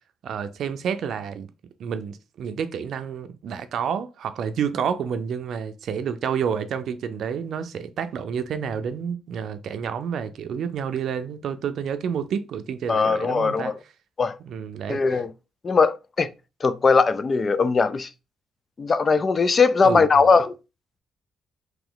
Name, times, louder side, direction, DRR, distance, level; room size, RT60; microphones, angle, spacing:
voice 1, 0.2-1.5 1.8-13.7 14.4-15.0 19.8-20.2, right 7 dB, 70° right, 0.5 m, -29 dB
voice 2, 12.9-13.8 14.2-14.4 14.9-15.3 15.6-16.3 16.6-18.1 18.8-20.5, left 4 dB, 35° left, 0.3 m, -20 dB
3.0 x 2.9 x 3.9 m
cardioid pair, 90°, 0 cm